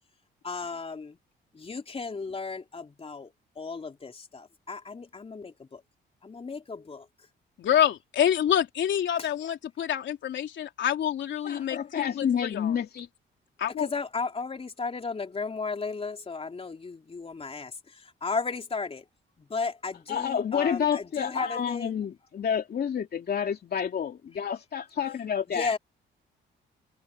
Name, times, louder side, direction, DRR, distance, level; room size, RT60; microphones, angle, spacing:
voice 1, 0.4-1.1 1.6-5.8 6.2-7.1 9.2-9.3 13.8-19.0 19.4-22.0 25.5-25.8, left 4 dB, 30° left, 3.5 m, -35 dB
voice 2, 7.6-12.8 13.6-13.9, left 10 dB, 70° left, 3.7 m, -27 dB
voice 3, 11.4-13.1 20.1-25.7, left 8 dB, 50° left, 2.8 m, -29 dB
cardioid pair, 90°, 20 cm